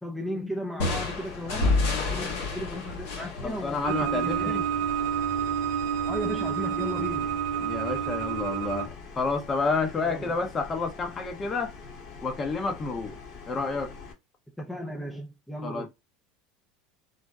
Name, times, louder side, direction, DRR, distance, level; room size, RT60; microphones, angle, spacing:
voice 1, 0.0-4.9 6.1-7.4 10.0-10.4 14.6-15.9, equal, 5° left, 0.5 m, -36 dB
sound 1, 0.8-4.5, left 3 dB, 80° left, 1.6 m, -29 dB
sound 2, 1.1-14.1, left 4 dB, 50° left, 1.7 m, -44 dB
voice 2, 3.4-4.6 7.6-11.7 12.2-13.2 13.5-13.9 15.6-15.9, left 4 dB, 30° left, 0.9 m, -30 dB
sound 3, 3.8-8.9, right 8 dB, 80° right, 0.6 m, -29 dB
4.0 x 2.1 x 2.3 m
supercardioid pair, 100°, 0 cm